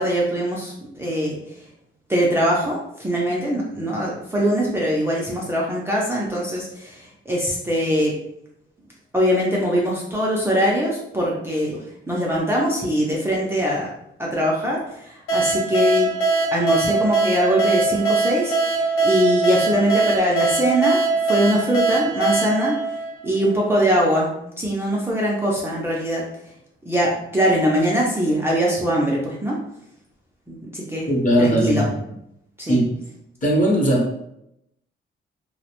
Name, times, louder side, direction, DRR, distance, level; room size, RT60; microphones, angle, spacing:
voice 1, 0.0-1.4 2.1-8.1 9.1-13.9 14.2-16.1 16.5-22.7 23.2-24.3 24.6-26.2 26.9-29.6 30.5-31.1 31.4-31.9 32.6-32.8, equal, 10° right, -5 dB, 0.3 m, -22 dB
sound 1, 15.3-23.7, right 3 dB, 80° left, 0.7 m, -22 dB
voice 2, 31.1-32.0 32.7-33.0 33.4-34.2, right 1 dB, 40° left, -2 dB, 0.7 m, -19 dB
2.4 x 2.0 x 2.8 m, 0.80 s
wide cardioid pair, 160°, 21 cm